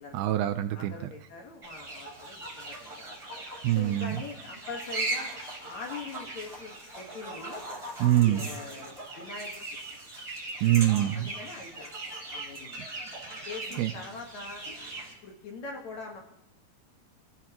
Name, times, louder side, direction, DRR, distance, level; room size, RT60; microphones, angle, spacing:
voice 1, 0.1-0.9 3.6-4.2 8.0-8.4 10.6-11.3 13.8-13.9, right 14 dB, 80° right, 9 dB, 2.4 m, -24 dB
voice 2, 0.7-3.1 3.7-5.3 5.6-7.6 8.1-9.9 11.1-11.9 12.3-12.8 13.5-14.6 15.2-16.2, left 4 dB, 55° left, 1 dB, 2.3 m, -43 dB
sound 1, 1.6-15.1, right 2 dB, 10° right, 3.7 m, -39 dB
28.5 x 15.5 x 3.0 m, 0.83 s
omnidirectional pair, 4.8 m